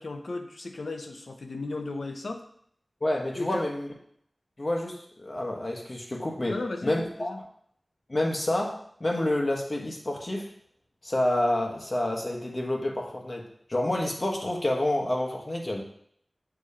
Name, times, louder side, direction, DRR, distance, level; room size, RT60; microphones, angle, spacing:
voice 1, 0.0-2.4 3.3-3.7 6.5-7.4, left 2 dB, 80° left, 5 dB, 0.7 m, -35 dB
voice 2, 3.0-3.9 4.6-6.5 6.8-7.3 8.1-10.5 11.0-13.4 13.7-15.8, left 1 dB, 45° left, 0 dB, 1.3 m, -28 dB
6.8 x 3.0 x 5.6 m, 0.66 s
wide cardioid pair, 70°, 0 cm